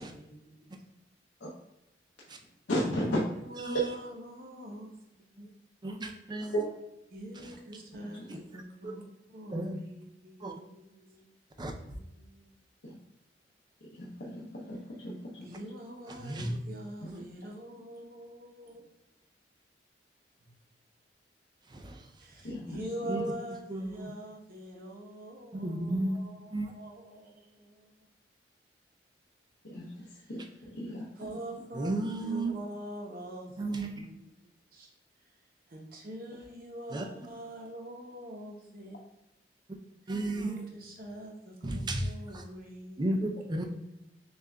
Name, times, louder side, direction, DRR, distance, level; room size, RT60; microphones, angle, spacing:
voice 1, 0.0-0.7 2.7-5.5 7.1-9.0 9.3-11.3 11.7-12.5 15.4-16.4 16.6-18.8 20.4-20.5 22.2-28.1 30.0-30.4 31.2-34.9 35.7-39.0 40.3-43.7, right 1 dB, 55° right, 0 dB, 0.9 m, -44 dB
voice 2, 2.7-3.2 6.5-6.7 8.0-8.3 12.8-12.9 13.9-15.5 16.4-16.5 22.4-22.8 29.7-29.9 30.3-30.4 30.7-31.1, equal, 90° left, -5 dB, 0.7 m, -34 dB
voice 3, 3.6-3.9 5.8-6.5 9.5-9.8 10.4-10.5 11.6-12.0 16.2-16.6 17.1-17.2 21.7-22.1 23.1-23.2 23.7-24.1 25.6-26.2 26.5-26.7 31.7-32.5 33.6-34.0 36.9-37.0 40.1-40.6 41.6-42.1 42.3-42.4 43.0-43.7, right 2 dB, 25° right, 3 dB, 0.5 m, -33 dB
6.4 x 2.5 x 2.3 m, 0.90 s
head